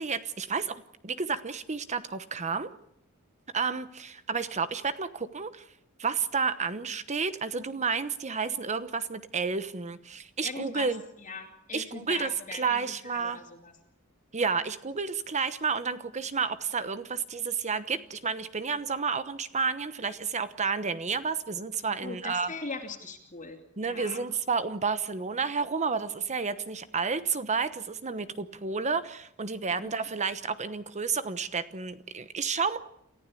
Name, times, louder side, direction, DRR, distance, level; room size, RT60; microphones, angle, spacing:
voice 1, 0.0-2.7 3.5-5.6 6.0-11.0 11.7-13.4 14.3-22.5 23.8-32.8, right 5 dB, 35° right, 12 dB, 1.0 m, -31 dB
voice 2, 10.4-13.7 21.8-24.2, left 3 dB, 35° left, -1 dB, 2.8 m, -41 dB
28.5 x 15.0 x 8.5 m, 0.75 s
head